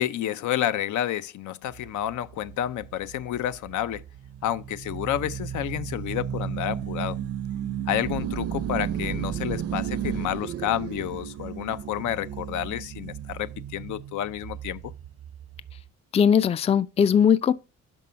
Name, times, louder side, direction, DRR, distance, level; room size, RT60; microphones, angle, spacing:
voice 1, 0.0-4.0 4.4-7.2 7.9-14.9, left 12 dB, 75° left, 0.6 m, -30 dB
sound 1, 1.7-15.9, right 9 dB, 50° right, 0.5 m, -34 dB
voice 2, 16.1-17.5, left 7 dB, 20° left, 0.3 m, -19 dB
6.0 x 5.4 x 5.6 m
cardioid pair, 90°, 30 cm